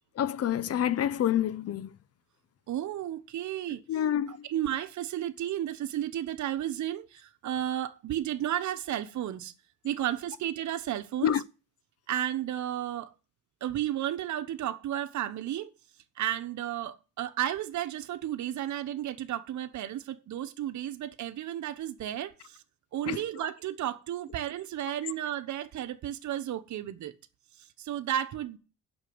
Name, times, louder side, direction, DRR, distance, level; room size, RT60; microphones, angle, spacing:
voice 1, 0.2-1.9 3.9-4.5 11.2-11.4 23.1-23.2, left 10 dB, 55° left, 0.7 m, -27 dB
voice 2, 2.7-3.8 4.3-9.5 9.8-11.3 12.1-13.1 13.6-15.7 16.2-22.6 22.9-27.1 27.6-28.6, right 11 dB, 70° right, 1.1 m, -33 dB
8.1 x 6.3 x 7.9 m
cardioid pair, 90°, 30 cm